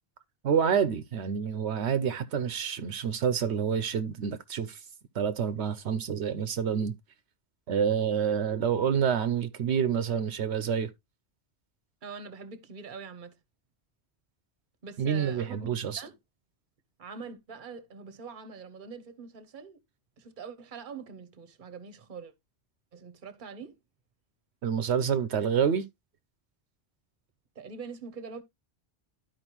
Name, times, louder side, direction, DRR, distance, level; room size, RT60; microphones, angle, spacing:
voice 1, 0.4-4.8 5.1-6.9 7.7-10.9 15.0-16.0 24.6-25.8, right 7 dB, 80° right, 1.0 m, -28 dB
voice 2, 12.0-13.4 14.8-15.7 16.0-16.2 17.0-19.8 20.2-22.3 22.9-23.8 27.5-28.4, right 5 dB, 50° right, 1.1 m, -43 dB
12.5 x 4.6 x 3.0 m
omnidirectional pair, 1.1 m